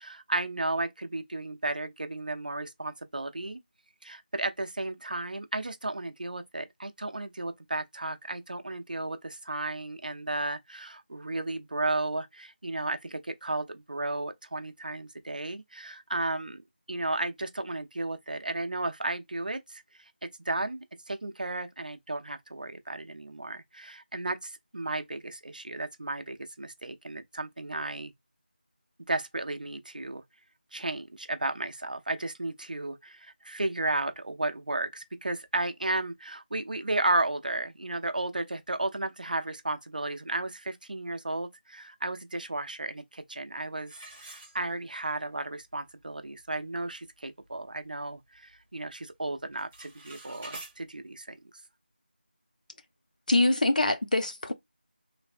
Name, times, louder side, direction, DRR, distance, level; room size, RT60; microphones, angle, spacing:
voice 1, 0.0-3.6 4.0-16.6 16.9-28.1 29.1-30.2 30.7-51.4, right 2 dB, 50° right, 0.6 m, -34 dB
sound 1, 43.9-45.1 45.6-45.7 46.2-46.3 46.7-47.0 47.5-48.6 48.9-49.2 49.5-50.7, right 2 dB, 5° right, 0.4 m, -47 dB
voice 2, 53.3-54.5, left 2 dB, 50° left, 0.6 m, -24 dB
3.3 x 3.1 x 2.5 m
figure-of-eight pair, 175°, 6 cm